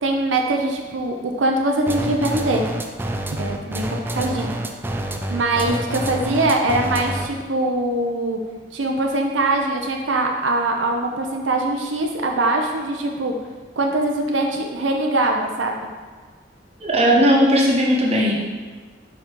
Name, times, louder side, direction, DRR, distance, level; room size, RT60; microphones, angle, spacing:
voice 1, 0.0-2.6 3.3-4.6 5.3-8.4 8.7-13.3 13.8-15.8, right 2 dB, 90° right, 2 dB, 0.6 m, -22 dB
sound 1, 1.9-7.4, right 1 dB, 10° right, 0.4 m, -27 dB
voice 2, 16.8-18.3, equal, 35° right, -3 dB, 1.1 m, -17 dB
5.0 x 4.7 x 4.6 m, 1.4 s
head